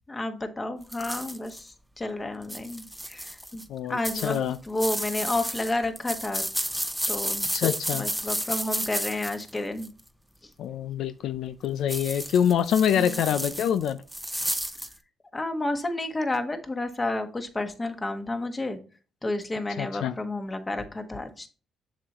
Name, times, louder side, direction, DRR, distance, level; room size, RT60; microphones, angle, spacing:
voice 1, 0.1-3.6 3.9-4.4 4.6-6.4 7.1-7.5 7.9-9.9 10.4-10.5 12.9-13.3 15.3-18.8 19.2-21.5, left 2 dB, 20° left, 7 dB, 1.3 m, -31 dB
sound 1, 0.9-1.6 2.4-3.6 4.0-10.0 11.9-14.9, equal, ahead, 0.7 m, -32 dB
voice 2, 3.7-4.6 7.5-8.1 10.6-14.0 19.8-20.1, left 9 dB, 80° left, 12 dB, 0.4 m, -25 dB
7.2 x 6.9 x 2.9 m, 0.36 s
cardioid pair, 90°, 0 cm